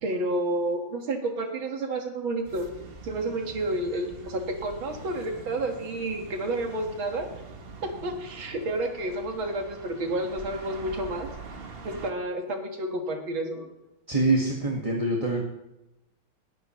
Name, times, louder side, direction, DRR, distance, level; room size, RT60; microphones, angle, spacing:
voice 1, 0.0-2.7 3.0-7.3 7.8-11.3 11.8-13.7, right 1 dB, 65° right, 4 dB, 2.4 m, -30 dB
sound 1, 2.4-12.1, right 4 dB, 35° right, 1.0 m, -44 dB
voice 2, 14.1-15.4, right 2 dB, 15° right, -1 dB, 1.5 m, -24 dB
19.5 x 13.5 x 3.1 m, 0.90 s
omnidirectional pair, 2.4 m